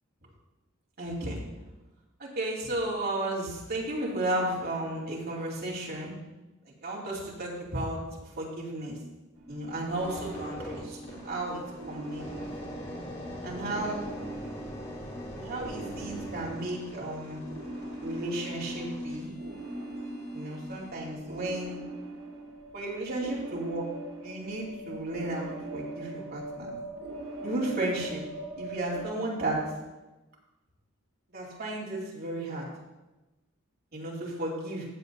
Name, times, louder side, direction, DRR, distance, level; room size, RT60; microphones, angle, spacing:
voice 1, 1.0-1.4 2.2-6.1 6.8-8.0 8.4-9.0 9.5-11.6 11.9-12.3 13.4-14.1 15.3-17.4 18.0-19.3 20.3-21.8 22.7-23.9 24.2-26.8 27.4-28.2 28.6-29.6 31.3-32.7 33.9-34.9, right 1 dB, 50° right, -5 dB, 2.7 m, -33 dB
sound 1, 9.3-29.0, right 1 dB, 75° right, 2.1 m, -41 dB
sound 2, 10.0-20.9 21.5-21.7, left 1 dB, 50° left, 2.3 m, -44 dB
14.5 x 7.7 x 2.7 m, 1.1 s
head